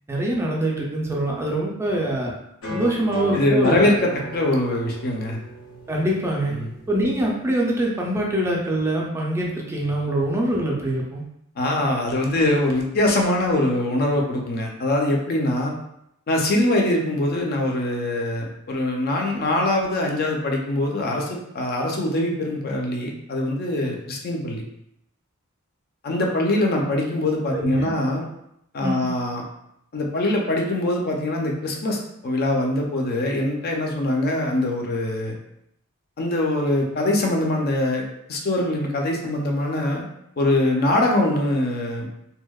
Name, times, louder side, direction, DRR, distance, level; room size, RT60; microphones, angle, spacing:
voice 1, 0.1-2.3 2.7-3.8 5.9-6.6 6.9-11.2 27.5-27.9 28.8-29.1, right 1 dB, 10° right, -2 dB, 0.4 m, -24 dB
sound 1, 2.6-7.6, left 1 dB, 80° left, 0.7 m, -36 dB
voice 2, 3.3-5.4 6.5-6.7 11.6-15.7 16.3-21.3 21.5-24.6 26.0-28.3 28.7-29.4 29.9-35.3 36.2-38.0 38.3-40.0 40.4-42.1, left 1 dB, 50° left, 1 dB, 0.4 m, -23 dB
2.7 x 2.0 x 2.2 m, 0.78 s
head